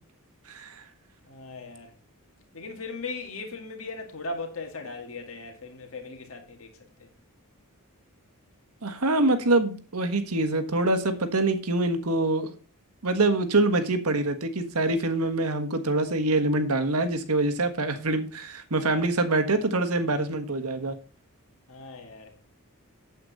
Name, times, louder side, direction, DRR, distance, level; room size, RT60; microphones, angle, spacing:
voice 1, 0.5-0.8 8.8-12.5 13.0-20.9, right 2 dB, 85° right, 1.5 m, -25 dB
voice 2, 1.2-1.9 2.5-7.1 21.7-22.3, left 3 dB, 65° left, 2.0 m, -38 dB
8.6 x 8.0 x 4.1 m
head